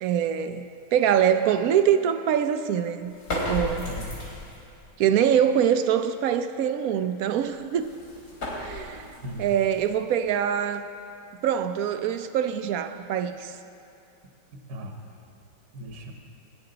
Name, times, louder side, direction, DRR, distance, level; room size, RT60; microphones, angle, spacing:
voice 1, 0.0-3.1 3.5-3.9 5.0-7.9 8.6-10.9 11.4-13.5, right 9 dB, 70° right, 0.9 m, -24 dB
sound 1, 3.1-4.7 7.4-10.4, left 1 dB, 60° left, 3.7 m, -35 dB
voice 2, 14.5-15.2 15.7-16.1, equal, 55° right, 1.3 m, -38 dB
19.5 x 10.0 x 3.9 m
omnidirectional pair, 1.9 m